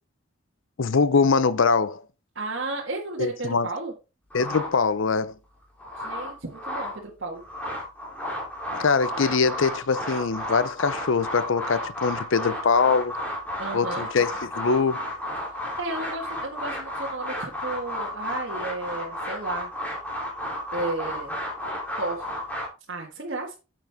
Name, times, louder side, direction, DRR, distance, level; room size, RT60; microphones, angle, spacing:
voice 1, 0.8-2.0 3.2-3.7 4.3-5.3 8.7-13.1 13.7-15.0, left 5 dB, 70° left, 0.6 m, -23 dB
voice 2, 2.4-3.9 6.0-7.4 13.6-14.1 15.8-19.7 20.7-21.4 22.0-22.3 22.9-23.6, right 2 dB, 60° right, 1.8 m, -33 dB
sound 1, 4.3-5.2 5.6-7.0 7.3-22.7, left 1 dB, 5° left, 3.2 m, -33 dB
9.2 x 7.6 x 3.6 m
head